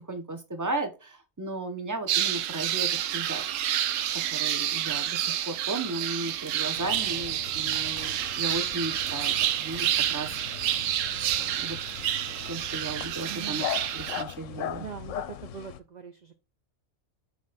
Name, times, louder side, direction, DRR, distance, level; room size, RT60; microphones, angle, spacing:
voice 1, 0.1-3.5 4.3-10.3 11.6-11.8 12.5-13.6 13.9-14.9, right 2 dB, 15° right, 6 dB, 0.9 m, -35 dB
sound 1, 2.1-14.2, right 11 dB, 75° right, 0.9 m, -29 dB
sound 2, 6.8-15.8, left 11 dB, 70° left, 0.9 m, -39 dB
voice 2, 13.3-13.6 14.8-16.3, right 8 dB, 45° right, 7 dB, 0.6 m, -42 dB
6.3 x 4.6 x 3.6 m, 0.29 s
omnidirectional pair, 1.4 m